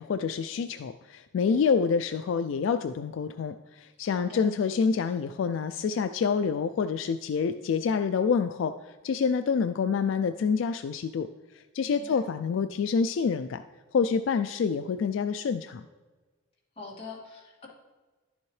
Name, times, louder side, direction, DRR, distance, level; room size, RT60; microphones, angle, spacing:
voice 1, 0.0-11.3 11.7-13.6 13.9-15.8, left 5 dB, 70° left, 10 dB, 0.3 m, -27 dB
voice 2, 4.0-4.4 11.8-12.2 16.8-17.7, left 3 dB, 30° left, -5 dB, 2.2 m, -44 dB
11.5 x 7.2 x 3.2 m, 1.3 s
head